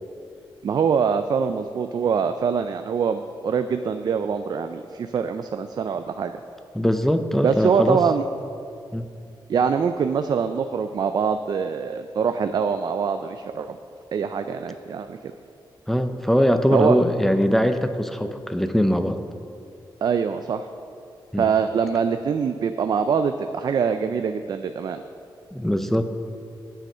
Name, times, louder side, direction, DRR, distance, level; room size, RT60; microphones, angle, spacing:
voice 1, 0.6-6.3 7.4-8.2 9.5-13.8 14.1-15.2 16.7-17.0 20.0-20.7 21.4-25.0, right 6 dB, 55° right, 8 dB, 0.4 m, -24 dB
voice 2, 6.7-8.0 8.9-9.1 15.9-19.2 21.3-21.4 25.5-26.1, equal, 5° left, 8 dB, 0.5 m, -21 dB
9.0 x 8.0 x 5.4 m, 2.4 s
wide cardioid pair, 135°, 9 cm